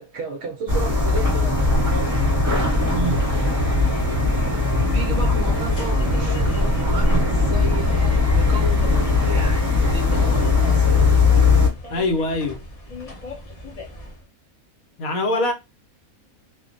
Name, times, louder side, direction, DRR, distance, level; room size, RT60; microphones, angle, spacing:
voice 1, 0.0-2.2 4.3-4.6 4.9-11.0, right 2 dB, 65° right, 0.7 m, -33 dB
sound 1, 0.7-11.7, left 3 dB, 10° right, 0.9 m, -19 dB
voice 2, 2.9-3.3 11.9-12.6 15.0-15.5, left 1 dB, 75° left, 1.0 m, -23 dB
sound 2, 5.4-14.3, left 1 dB, 55° left, 0.4 m, -38 dB
2.4 x 2.1 x 2.5 m
omnidirectional pair, 1.5 m